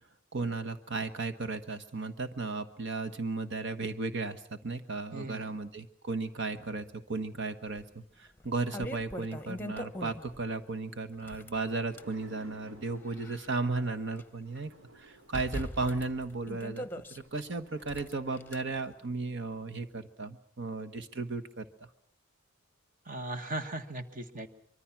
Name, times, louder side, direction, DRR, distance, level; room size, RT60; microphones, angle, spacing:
voice 1, 0.3-21.6, right 3 dB, 60° right, 8 dB, 1.4 m, -35 dB
voice 2, 5.1-5.6 23.1-24.5, right 2 dB, 40° right, 8 dB, 1.8 m, -38 dB
sound 1, 7.8-7.9 8.4-10.4 11.1-12.1 12.8-14.2 14.6-14.7 15.3-17.2 17.8-18.6, left 1 dB, 10° left, 1.1 m, -41 dB
sound 2, 9.3-13.7 14.3-16.3 16.8-16.9 17.1-19.0, right 1 dB, 85° right, 4.5 m, -58 dB
25.0 x 23.0 x 6.0 m, 0.66 s
head